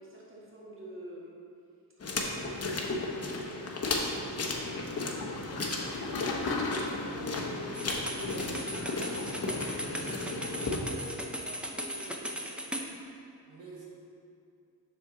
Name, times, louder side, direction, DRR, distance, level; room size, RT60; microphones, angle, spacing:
voice 1, 0.0-1.4 3.5-8.2 8.7-10.6 10.8-12.7, equal, 30° right, -5 dB, 1.7 m, -48 dB
sound 1, 2.0-10.8, left 3 dB, 35° left, 0.9 m, -34 dB
sound 2, 5.3-10.9, left 3 dB, 60° left, 1.0 m, -40 dB
sound 3, 7.7-12.9, equal, 5° right, 0.6 m, -38 dB
voice 2, 8.0-9.2 9.7-10.0 10.3-10.9 13.4-13.8, right 2 dB, 90° right, -6 dB, 1.8 m, -47 dB
7.5 x 6.2 x 3.8 m, 2.4 s
cardioid pair, 100°, 43 cm